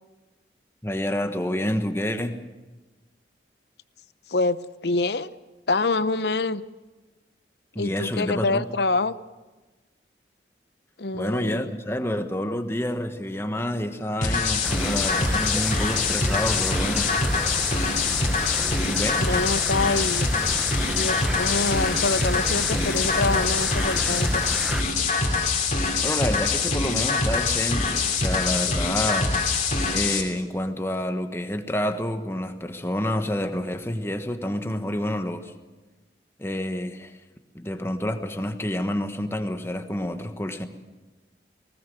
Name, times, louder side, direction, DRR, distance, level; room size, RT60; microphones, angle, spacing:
voice 1, 0.8-2.4 7.7-8.6 11.1-17.1 18.8-19.2 26.0-29.3 29.9-35.5 36.4-37.2 37.5-40.7, left 1 dB, 15° left, 7 dB, 1.3 m, -28 dB
voice 2, 4.3-5.3 5.7-6.6 7.8-9.1 11.0-11.7 19.2-20.3 21.0-24.4, left 3 dB, 70° left, 15 dB, 0.8 m, -26 dB
sound 1, 14.2-30.2, left 4 dB, 40° left, 3.0 m, -24 dB
sound 2, 14.6-24.8, equal, 5° right, 0.7 m, -32 dB
20.0 x 18.5 x 7.8 m, 1.2 s
head